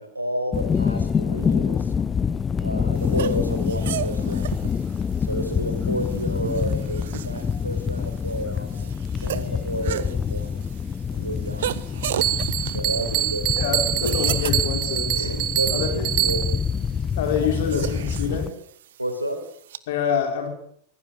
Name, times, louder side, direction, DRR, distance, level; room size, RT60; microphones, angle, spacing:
voice 1, 0.0-1.9 2.6-4.6 5.2-8.7 9.2-10.6 11.1-11.7 12.7-13.6 13.9-14.2 15.1-16.5 17.7-17.9 19.0-19.4, right 1 dB, 85° right, 6 dB, 4.8 m, -30 dB
sound 1, 0.5-18.5, left 6 dB, 20° left, 0.8 m, -26 dB
sound 2, 3.0-19.8, right 11 dB, 60° right, 1.1 m, -36 dB
Bell, 12.2-16.7, right 13 dB, 40° right, 2.0 m, -25 dB
voice 2, 13.6-15.3 15.7-15.9 17.2-18.5 19.9-20.5, left 7 dB, 55° left, 3 dB, 5.2 m, -26 dB
25.0 x 17.0 x 6.8 m, 0.66 s
figure-of-eight pair, 90°, 0 cm